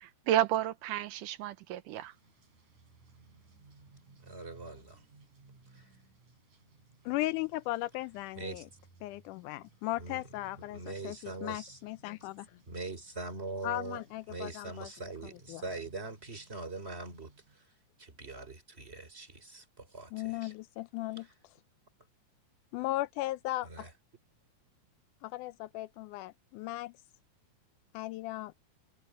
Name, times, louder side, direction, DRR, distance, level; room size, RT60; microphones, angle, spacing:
voice 1, 0.0-2.1, right 12 dB, 85° right, 2.4 m, -31 dB
sound 1, 1.9-17.6, right 4 dB, 65° right, 7.2 m, -62 dB
voice 2, 4.2-5.0 5.7-5.9 8.4-8.7 10.0-10.2 10.7-11.8 12.7-14.0 14.3-17.7 18.0-20.5 21.2-21.3 23.6-23.9, right 3 dB, 20° right, 3.5 m, -42 dB
voice 3, 7.1-8.7 9.0-11.2 11.4-12.5 13.6-14.9 15.5-15.6 20.1-21.3 22.7-23.9 25.2-26.9 27.9-28.5, left 17 dB, 80° left, 2.0 m, -37 dB
omnidirectional pair, 3.7 m